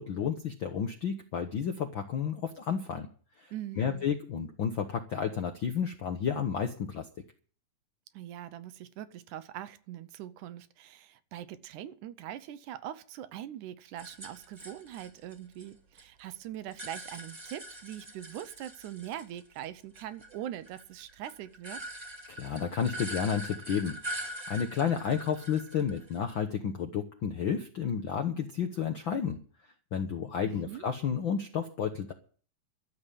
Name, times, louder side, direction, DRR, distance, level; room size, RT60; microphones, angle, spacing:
voice 1, 0.0-3.1 3.4-7.1 22.3-29.4 29.9-32.1, left 7 dB, 70° left, 1.2 m, -31 dB
voice 2, 3.5-4.1 8.1-21.8 30.5-30.8, right 11 dB, 75° right, 2.1 m, -42 dB
sound 1, 14.0-16.0 16.3-19.7 19.9-26.3, right 1 dB, 15° right, 1.7 m, -43 dB
13.0 x 7.5 x 10.0 m
omnidirectional pair, 3.7 m